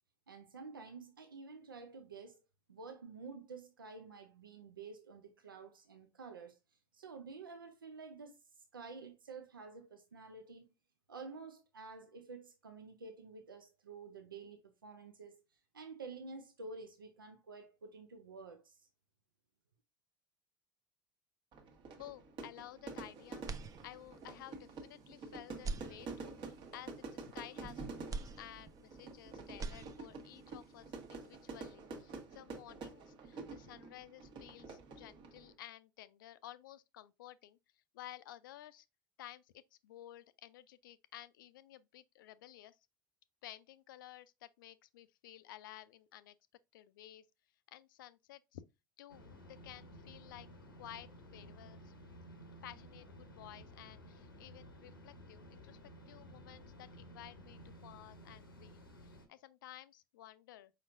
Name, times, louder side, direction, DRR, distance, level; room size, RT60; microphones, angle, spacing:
voice 1, 0.3-2.4 2.7-6.6 6.9-8.4 8.7-10.7 11.1-15.4 15.7-18.9, right 4 dB, 85° right, 0.6 m, -50 dB
Fire / Fireworks, 21.5-35.5, right 4 dB, 50° right, 1.2 m, -48 dB
voice 2, 22.0-23.5 23.8-37.6 37.9-38.9 39.2-42.8 43.4-46.3 46.7-47.2 47.7-48.6 49.0-50.5 50.8-51.9 52.6-55.8 56.1-60.7, left 13 dB, 70° left, 0.4 m, -54 dB
sound 1, 23.4-24.3 24.8-24.9 25.5-26.6 28.1-29.2 29.5-30.4, right 3 dB, 30° right, 0.6 m, -44 dB
sound 2, 49.1-59.3, equal, 90° left, 0.8 m, -55 dB
5.1 x 4.2 x 2.5 m
figure-of-eight pair, 70°, 11 cm